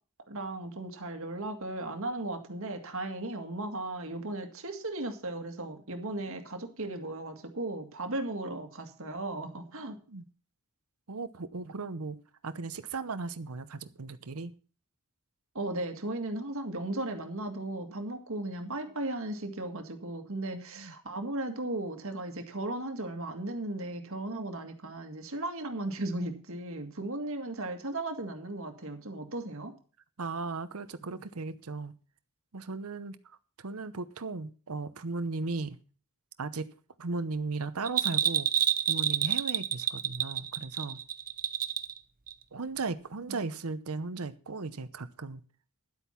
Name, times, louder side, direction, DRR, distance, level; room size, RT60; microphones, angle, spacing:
voice 1, 0.3-10.0 15.5-29.8 43.3-43.4, right 2 dB, 65° right, 2.0 m, -36 dB
voice 2, 9.8-10.2 11.1-12.2 12.4-14.5 20.5-20.9 30.2-31.9 32.5-35.8 36.4-36.7 37.0-38.5 38.9-41.0 42.5-45.4, right 3 dB, 90° right, 0.9 m, -37 dB
Bell, 37.8-42.0 42.3-42.4, right 10 dB, 40° right, 0.8 m, -28 dB
11.5 x 8.3 x 5.8 m
head